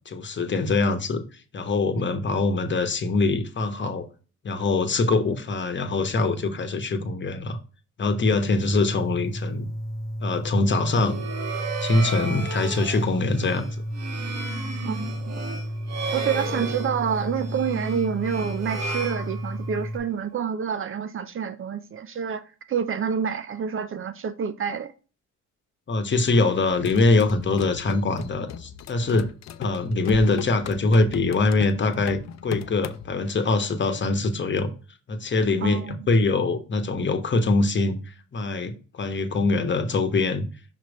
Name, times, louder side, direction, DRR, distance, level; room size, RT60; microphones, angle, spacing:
voice 1, 0.1-1.2 1.5-4.1 4.4-7.6 8.0-9.7 10.2-11.1 11.8-13.6 25.9-29.3 29.6-34.7 35.1-40.4, left 3 dB, 40° left, 1.1 m, -23 dB
sound 1, 8.5-20.0, equal, 10° left, 0.9 m, -33 dB
sound 2, 10.9-19.9, right 3 dB, 60° right, 1.4 m, -34 dB
voice 2, 14.8-15.4 16.1-24.9 35.6-36.1, right 7 dB, 45° right, 0.6 m, -28 dB
sound 3, 26.7-33.1, left 8 dB, 60° left, 0.6 m, -38 dB
5.9 x 3.1 x 5.2 m
cardioid pair, 90°, 30 cm